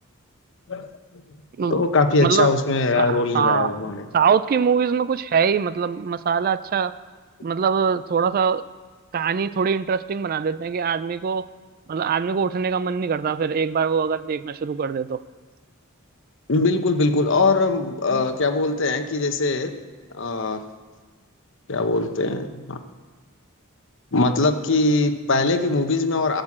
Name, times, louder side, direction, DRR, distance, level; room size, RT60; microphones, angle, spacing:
voice 1, 1.7-4.0 16.5-19.7 20.1-20.6 21.7-22.8 24.1-26.4, left 3 dB, 60° left, 7 dB, 0.9 m, -21 dB
voice 2, 3.0-3.7 4.1-6.9 7.4-8.6 9.1-11.5 11.9-15.2, right 6 dB, 45° right, 15 dB, 0.3 m, -23 dB
15.0 x 6.7 x 7.2 m, 1.4 s
head